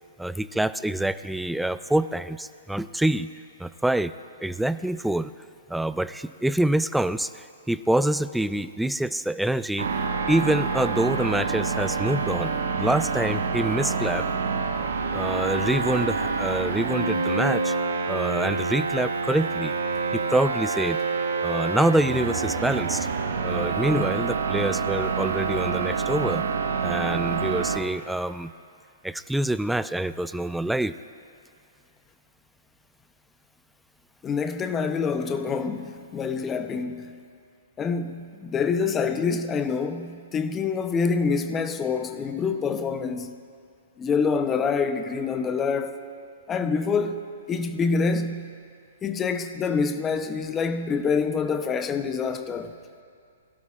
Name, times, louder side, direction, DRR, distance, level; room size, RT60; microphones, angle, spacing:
voice 1, 0.2-3.3 3.6-4.1 4.4-5.3 5.7-14.2 15.1-17.8 18.1-19.7 20.1-21.0 21.4-23.1 23.4-26.4 26.8-28.5 29.0-30.9, right 1 dB, 5° right, 0.3 m, -26 dB
sound 1, 9.8-27.8, right 4 dB, 80° right, 1.2 m, -27 dB
voice 2, 34.2-37.2 37.8-43.4 44.0-46.0 46.5-47.2 47.5-48.5 49.0-52.7, left 5 dB, 20° left, 0.7 m, -26 dB
21.5 x 12.5 x 2.5 m
hypercardioid pair, 130°, 0 cm